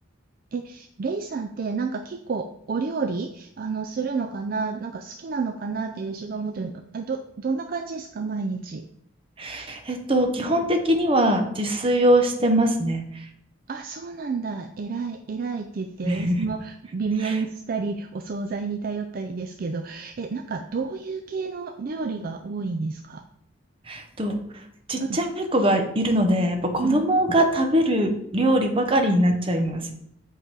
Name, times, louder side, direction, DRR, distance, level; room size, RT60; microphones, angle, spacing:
voice 1, 0.5-8.9 13.7-23.2 25.0-25.2 26.8-27.0, right 4 dB, 45° right, 5 dB, 0.4 m, -30 dB
voice 2, 9.4-13.0 16.0-16.5 17.2-17.3 23.9-24.4 24.9-29.9, right 1 dB, 25° right, 5 dB, 0.8 m, -22 dB
7.8 x 3.8 x 4.6 m, 0.74 s
head